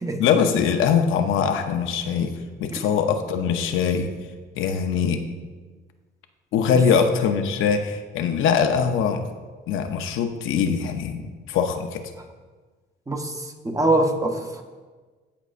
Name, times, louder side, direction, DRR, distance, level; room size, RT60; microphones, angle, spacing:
voice 1, 0.2-4.1 4.6-5.2 6.5-9.3 9.7-12.0, left 6 dB, 85° left, 6 dB, 0.7 m, -22 dB
voice 2, 13.6-14.6, right 2 dB, 15° right, 4 dB, 1.0 m, -23 dB
13.0 x 5.2 x 2.5 m, 1.4 s
cardioid pair, 90°, 20 cm